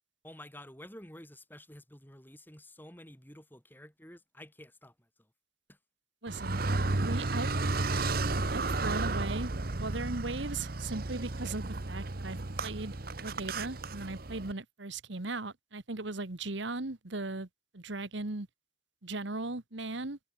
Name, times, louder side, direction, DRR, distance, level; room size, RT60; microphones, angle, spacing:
voice 1, 0.2-5.1 5.7-5.8, left 1 dB, 10° left, 5.4 m, -51 dB
voice 2, 6.2-6.6 6.9-7.5 7.9-8.1 8.5-12.9 13.2-17.5 17.7-18.5 19.0-20.2, right 2 dB, 65° right, 1.5 m, -38 dB
Car, 6.3-14.5, right 2 dB, 45° right, 1.1 m, -33 dB
head